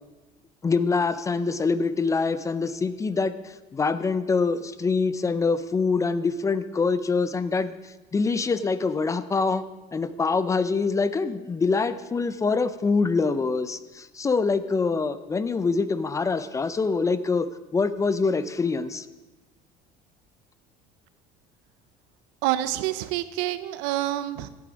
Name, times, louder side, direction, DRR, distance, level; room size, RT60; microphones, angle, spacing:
voice 1, 0.6-9.6 9.9-17.5 17.7-19.1, left 4 dB, 15° left, 13 dB, 0.5 m, -25 dB
voice 2, 22.4-24.5, right 14 dB, 85° right, 13 dB, 0.8 m, -27 dB
15.5 x 8.5 x 5.1 m, 1.2 s
cardioid pair, 140°, 18 cm